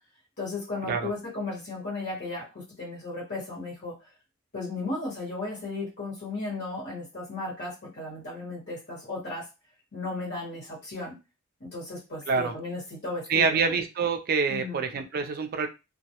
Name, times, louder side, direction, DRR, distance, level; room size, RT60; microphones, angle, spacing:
voice 1, 0.4-3.9 4.5-9.5 9.9-11.1 11.6-13.7 14.5-14.8, left 2 dB, 55° left, -3 dB, 1.0 m, -35 dB
voice 2, 12.3-12.6 13.3-15.7, right 5 dB, 45° right, 7 dB, 0.3 m, -26 dB
2.2 x 2.0 x 2.8 m, 0.27 s
head